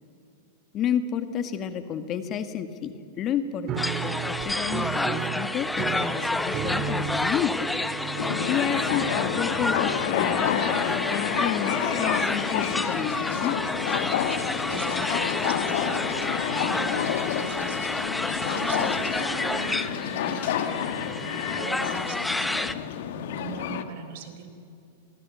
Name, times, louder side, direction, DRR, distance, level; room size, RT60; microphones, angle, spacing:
voice 1, 0.7-7.7 8.5-13.6, left 8 dB, 35° left, 9 dB, 1.9 m, -31 dB
Piano, 3.7-10.5, right 7 dB, 35° right, 2.1 m, -34 dB
sound 1, 3.8-22.7, left 2 dB, 5° left, 1.1 m, -30 dB
sound 2, 8.2-23.8, left 10 dB, 65° left, 1.7 m, -29 dB
voice 2, 14.7-17.8 18.5-22.8 23.4-24.5, right 5 dB, 65° right, 8 dB, 4.0 m, -40 dB
27.0 x 18.5 x 8.5 m, 2.5 s
hypercardioid pair, 110°, 0 cm